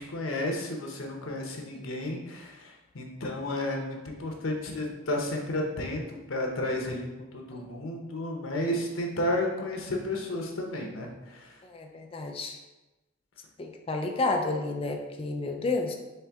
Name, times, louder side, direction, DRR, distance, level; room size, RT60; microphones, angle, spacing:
voice 1, 0.0-11.6, left 1 dB, 90° left, 1 dB, 0.9 m, -32 dB
voice 2, 11.6-12.6 13.6-15.9, left 3 dB, 30° left, 3 dB, 0.4 m, -31 dB
4.3 x 3.4 x 3.5 m, 1.1 s
head